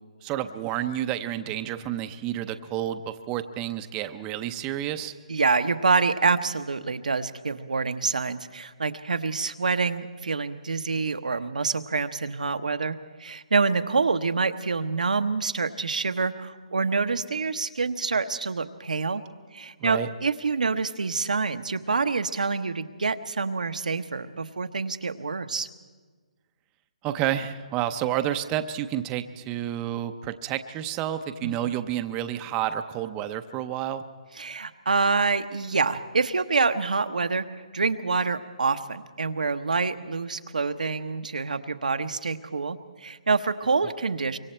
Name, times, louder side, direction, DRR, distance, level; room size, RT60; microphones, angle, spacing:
voice 1, 0.2-5.1 19.8-20.1 27.0-34.0, right 11 dB, 20° right, 9 dB, 0.6 m, -30 dB
voice 2, 5.3-19.2 19.5-25.7 31.4-31.7 34.4-37.5 37.7-44.4, right 4 dB, 90° right, 8 dB, 1.0 m, -26 dB
25.0 x 23.5 x 4.4 m, 1.4 s
hypercardioid pair, 160°, 4 cm